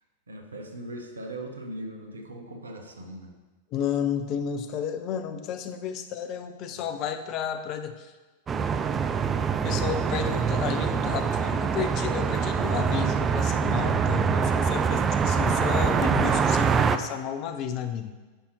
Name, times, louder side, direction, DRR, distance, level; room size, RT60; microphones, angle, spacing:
voice 1, 0.3-3.3 6.7-6.9, right 1 dB, 75° right, 4 dB, 0.8 m, -39 dB
voice 2, 3.7-8.1 9.6-18.1, left 8 dB, 40° left, 8 dB, 0.5 m, -32 dB
sound 1, 8.5-17.0, right 6 dB, 20° right, 0.3 m, -24 dB
10.0 x 5.6 x 3.0 m, 1.3 s
figure-of-eight pair, 90°, 0 cm